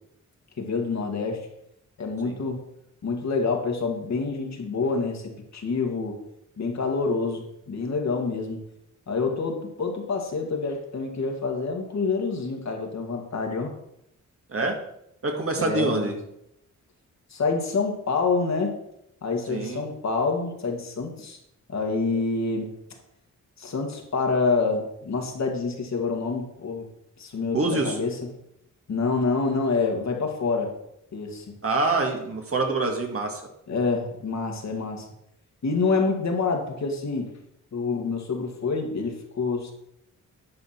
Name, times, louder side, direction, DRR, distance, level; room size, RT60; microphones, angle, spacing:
voice 1, 0.6-1.5 2.0-2.6 3.0-6.2 6.6-8.6 9.1-13.7 15.6-16.1 17.3-18.8 19.2-21.4 21.7-22.7 23.6-26.9 27.2-28.2 28.9-30.7 31.1-31.6 33.7-35.1 35.6-37.3 37.7-39.7, left 4 dB, 60° left, 2 dB, 2.0 m, -27 dB
voice 2, 15.2-16.2 19.5-19.8 27.5-28.0 31.6-33.4, right 3 dB, 45° right, 2 dB, 2.0 m, -26 dB
11.0 x 5.3 x 5.9 m, 0.79 s
cardioid pair, 95°, 31 cm